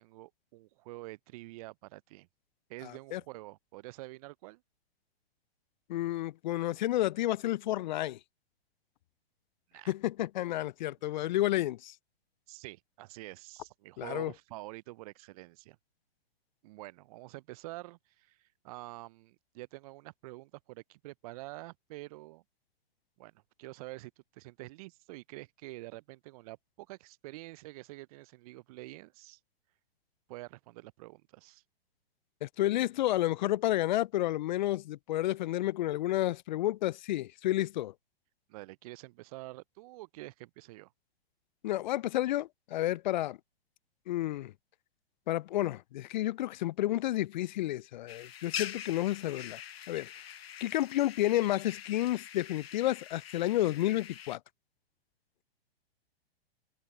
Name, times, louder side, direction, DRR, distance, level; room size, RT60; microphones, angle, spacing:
voice 1, 0.0-2.3 2.7-4.6 9.7-9.9 11.2-11.3 12.5-15.8 16.6-22.4 23.2-29.4 30.3-31.6 38.5-40.9, right 20 dB, 35° right, 0.5 m, -47 dB
voice 2, 5.9-8.2 9.9-11.9 14.0-14.3 32.4-37.9 41.6-43.4 44.1-44.5 45.3-49.6 49.9-50.1 50.6-54.4, left 15 dB, 50° left, 0.4 m, -31 dB
sound 1, 48.1-54.4, left 9 dB, 75° left, 0.9 m, -44 dB
open air
figure-of-eight pair, 115°, 31 cm